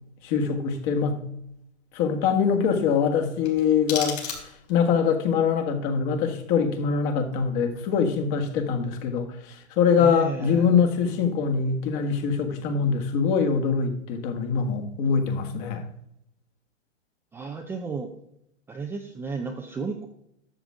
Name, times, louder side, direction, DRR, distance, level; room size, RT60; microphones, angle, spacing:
voice 1, 0.2-1.2 1.9-15.8, left 6 dB, 40° left, 1.7 m, -24 dB
sound 1, 3.4-4.9, left 7 dB, 60° left, 3.7 m, -34 dB
voice 2, 10.0-10.7 17.3-18.1 18.7-20.1, right 4 dB, 5° right, 0.4 m, -33 dB
12.5 x 7.3 x 3.6 m
hypercardioid pair, 130°, 36 cm